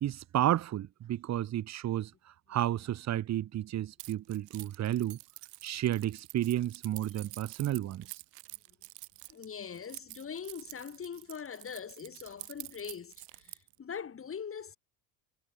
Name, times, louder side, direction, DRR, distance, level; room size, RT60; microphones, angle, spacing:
voice 1, 0.0-2.1 2.5-5.2 5.6-8.1, right 12 dB, 35° right, 0.8 m, -31 dB
Keys jangling, 4.0-13.8, right 28 dB, 70° right, 1.0 m, -48 dB
voice 2, 9.3-14.8, left 7 dB, 25° left, 2.2 m, -42 dB
hypercardioid pair, 80°, 49 cm